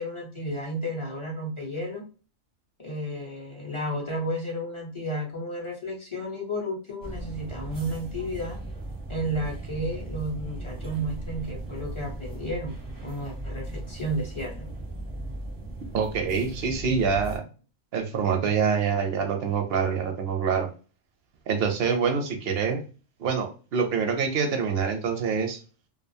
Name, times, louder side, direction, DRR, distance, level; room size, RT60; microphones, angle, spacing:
voice 1, 0.0-2.0 2.8-8.6 9.1-14.7, equal, 35° left, -2 dB, 0.5 m, -32 dB
sound 1, 7.0-17.4, right 2 dB, 25° right, 0.5 m, -37 dB
voice 2, 15.9-17.4 17.9-20.7 21.5-22.8 23.2-25.6, right 6 dB, 65° right, 4 dB, 0.7 m, -25 dB
2.4 x 2.3 x 2.6 m, 0.35 s
omnidirectional pair, 1.4 m